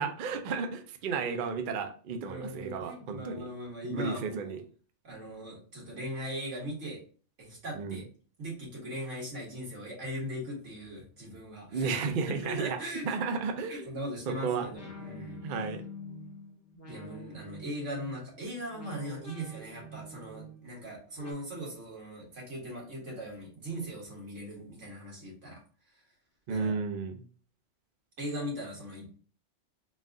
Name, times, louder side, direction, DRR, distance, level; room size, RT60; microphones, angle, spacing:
voice 1, 0.0-3.5 3.8-4.6 7.7-8.0 11.7-12.8 13.0-13.9 14.3-14.7 15.4-15.8 26.5-27.2, right 5 dB, 55° right, 6 dB, 0.6 m, -33 dB
voice 2, 2.3-4.5 5.0-7.0 7.4-8.0 8.4-13.1 13.7-15.4 16.9-25.6 26.5-26.8 28.2-29.1, equal, 85° right, -3 dB, 2.0 m, -39 dB
sound 1, 14.7-21.3, left 1 dB, 15° left, 0.8 m, -47 dB
4.1 x 2.4 x 3.6 m, 0.40 s
omnidirectional pair, 1.2 m